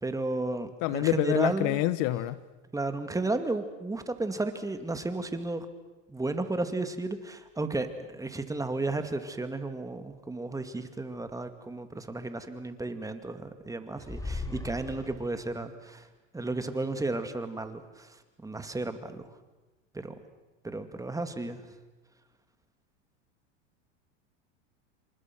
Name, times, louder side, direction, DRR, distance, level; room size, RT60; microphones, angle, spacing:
voice 1, 0.0-1.8 2.7-5.7 6.1-16.1 16.3-19.3 19.9-20.2 20.6-21.6, right 2 dB, 10° right, 9 dB, 2.3 m, -33 dB
voice 2, 0.8-2.4, left 15 dB, 55° left, 16 dB, 1.3 m, -26 dB
sound 1, 14.0-15.6, left 2 dB, 10° left, 2.3 m, -38 dB
28.5 x 26.5 x 6.2 m, 1.2 s
hypercardioid pair, 110°, 36 cm